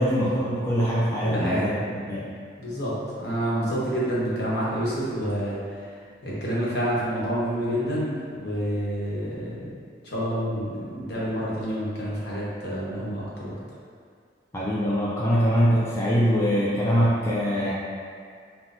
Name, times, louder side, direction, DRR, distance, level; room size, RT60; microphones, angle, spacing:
voice 1, 0.0-2.3 14.5-17.7, equal, 15° left, -7 dB, 0.3 m, -23 dB
voice 2, 1.2-2.1 2.6-5.8 6.2-9.7 10.0-13.5, equal, 60° left, -7 dB, 1.1 m, -28 dB
5.8 x 2.2 x 2.6 m, 2.2 s
head